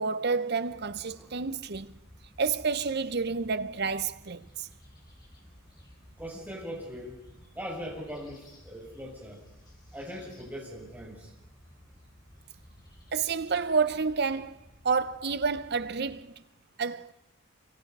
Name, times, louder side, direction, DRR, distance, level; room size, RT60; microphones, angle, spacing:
voice 1, 0.0-1.9 2.4-4.7 13.1-14.6 14.8-16.3 16.8-17.1, right 5 dB, 50° right, 0.7 m, -29 dB
sound 1, 0.7-16.2, equal, 20° left, 3.6 m, -55 dB
voice 2, 6.2-7.1 7.5-9.4 9.9-11.3, equal, 10° right, 6.8 m, -40 dB
26.5 x 24.5 x 5.4 m
head